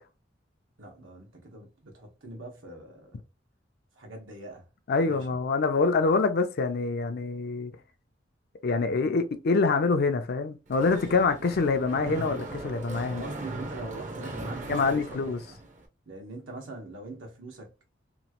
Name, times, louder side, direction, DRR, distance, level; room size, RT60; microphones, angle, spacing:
voice 1, 0.8-3.2 4.0-4.6 5.0-5.2 11.4-11.5 13.0-15.6 16.1-17.7, right 2 dB, 85° right, 1.2 m, -42 dB
voice 2, 4.9-7.7 8.6-13.2 14.7-15.4, left 4 dB, 55° left, 0.4 m, -25 dB
Mechanisms, 10.7-15.9, right 2 dB, 40° right, 0.6 m, -39 dB
3.0 x 2.4 x 2.9 m
head